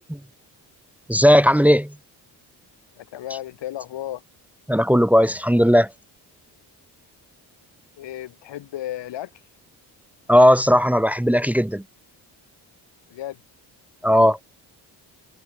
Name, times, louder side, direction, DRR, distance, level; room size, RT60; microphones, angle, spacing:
voice 1, 1.1-1.9 4.7-5.9 10.3-11.8 14.0-14.4, equal, 5° right, 1.5 m, -16 dB
voice 2, 3.0-4.2 8.0-9.3 13.1-13.4, left 13 dB, 85° left, 6.9 m, -33 dB
cardioid pair, 80°, 42 cm